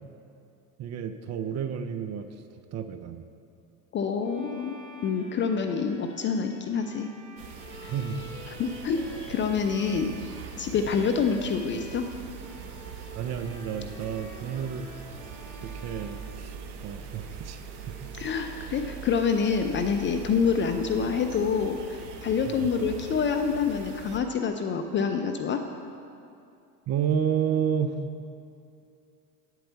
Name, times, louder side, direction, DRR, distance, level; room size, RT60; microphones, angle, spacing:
voice 1, 0.8-2.3 2.7-3.2 7.9-8.3 13.1-14.9 15.6-16.6 16.8-17.6 18.0-18.1 22.6-22.7 26.9-28.0, right 8 dB, 35° right, 8 dB, 0.5 m, -30 dB
voice 2, 3.9-4.8 5.0-7.1 7.8-7.9 8.6-10.1 10.6-12.1 18.1-25.6, left 6 dB, 25° left, 5 dB, 0.4 m, -27 dB
Bowed string instrument, 4.2-12.1 12.4-17.2, equal, 10° left, 1.4 m, -48 dB
sound 1, 7.4-24.2, right 6 dB, 60° right, 1.1 m, -42 dB
8.8 x 4.6 x 6.8 m, 2.6 s
hypercardioid pair, 75°, 48 cm